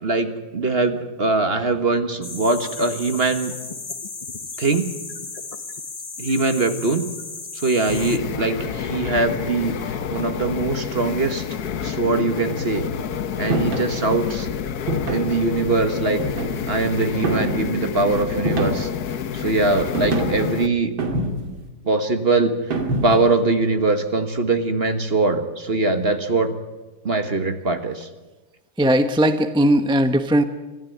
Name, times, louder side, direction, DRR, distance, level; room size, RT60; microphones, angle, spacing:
voice 1, 0.0-3.5 4.6-4.9 6.2-7.0 7.5-11.4 11.8-12.9 13.4-14.5 15.1-16.2 16.7-18.9 19.3-20.9 21.8-22.5 23.0-26.5 27.0-28.1, right 3 dB, 35° right, 9 dB, 1.5 m, -22 dB
sound 1, 2.2-8.2, left 4 dB, 25° left, 0.9 m, -35 dB
sound 2, 7.9-20.7, left 8 dB, 55° left, 1.4 m, -28 dB
sound 3, 13.5-13.9 14.9-15.4 16.2-16.8 17.2-17.7 18.5-19.0 19.9-20.5 21.0-21.6 22.7-23.3, right 1 dB, 80° right, 3.3 m, -25 dB
voice 2, 28.8-30.4, right 1 dB, 5° right, 9 dB, 0.6 m, -18 dB
25.5 x 15.5 x 9.4 m, 1.2 s
omnidirectional pair, 2.1 m